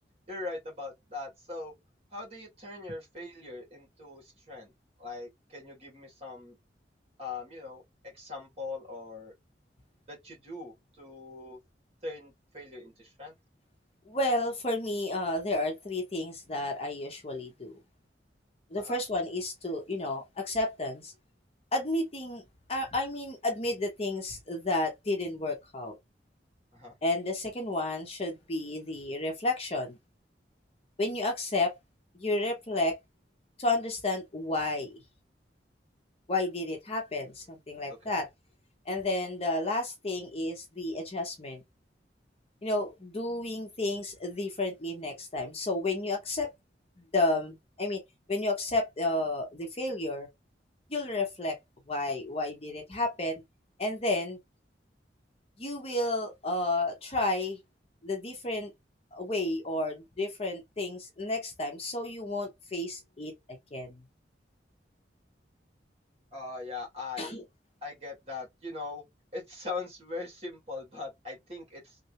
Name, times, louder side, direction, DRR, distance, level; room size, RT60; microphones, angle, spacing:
voice 1, 0.3-1.7 2.1-4.7 5.0-6.5 7.2-9.3 10.1-11.6 12.0-13.3 18.8-19.0 26.7-26.9 37.9-38.1 66.3-67.3 67.8-69.0 69.3-72.0, left 3 dB, 35° right, 1.8 m, -41 dB
voice 2, 14.1-17.7 18.7-21.1 21.7-22.4 22.7-26.0 27.0-30.0 31.0-31.8 32.1-33.0 33.6-35.0 36.3-38.3 38.9-41.6 42.6-46.5 47.1-48.0 48.3-50.3 50.9-51.6 51.9-53.4 53.8-54.4 55.6-57.6 58.0-58.7 59.1-64.0 67.2-67.4, left 2 dB, 35° left, 0.9 m, -31 dB
3.2 x 2.5 x 2.9 m
head